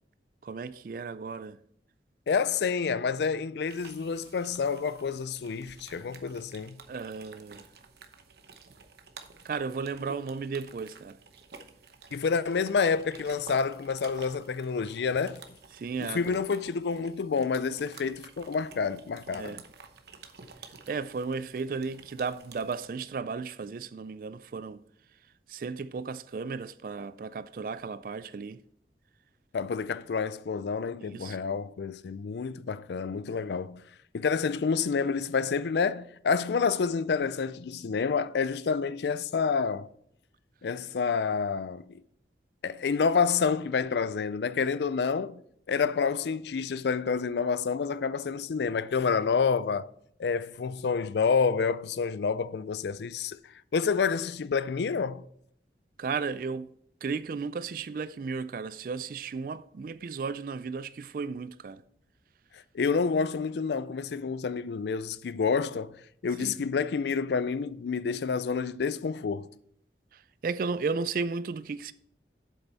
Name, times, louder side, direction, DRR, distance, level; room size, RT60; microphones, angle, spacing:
voice 1, 0.4-1.6 6.9-7.7 9.4-11.2 15.7-16.4 19.4-19.6 20.9-24.8 25.5-28.6 31.0-31.4 56.0-56.7 57.0-61.8 66.4-66.6 70.1-71.9, right 4 dB, 50° right, 0.3 m, -34 dB
voice 2, 2.3-6.8 12.1-15.4 16.0-19.6 29.5-33.8 34.1-39.9 40.6-42.0 42.6-45.4 45.7-49.9 50.2-53.4 53.7-55.2 62.7-65.9 66.2-69.5, left 5 dB, 70° left, 0.4 m, -28 dB
sound 1, 3.7-22.8, right 5 dB, 65° right, 0.9 m, -52 dB
8.0 x 7.3 x 4.0 m
head